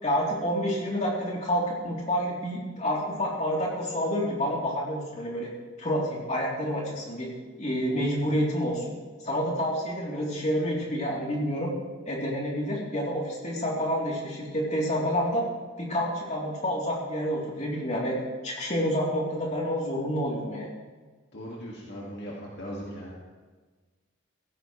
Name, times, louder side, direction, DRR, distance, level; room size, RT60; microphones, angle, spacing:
voice 1, 0.0-5.5 5.8-7.3 7.6-8.8 9.2-11.7 12.1-15.4 15.8-18.2 18.4-20.6, equal, 35° left, -3 dB, 3.2 m, -28 dB
voice 2, 21.3-23.2, equal, 55° left, -4 dB, 2.0 m, -38 dB
16.5 x 16.0 x 3.2 m, 1.4 s
head